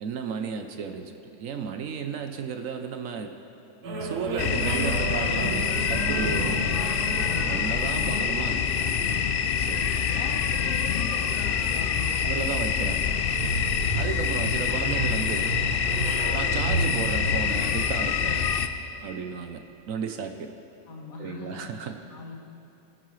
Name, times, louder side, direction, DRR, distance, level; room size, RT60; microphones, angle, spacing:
voice 1, 0.0-3.3 4.0-6.8 7.5-8.6 9.6-9.9 12.2-13.1 14.0-15.6 16.3-18.5 19.0-20.5 21.2-22.0, right 6 dB, 65° right, 6 dB, 1.0 m, -34 dB
sound 1, 3.8-19.2, right 3 dB, 85° right, 1.6 m, -34 dB
sound 2, 4.4-18.7, left 7 dB, 90° left, 0.5 m, -26 dB
voice 2, 7.8-8.6 10.0-12.3 14.3-14.6 20.9-22.4, left 3 dB, 65° left, 0 dB, 1.8 m, -41 dB
19.5 x 10.5 x 3.2 m, 2.9 s
omnidirectional pair, 1.6 m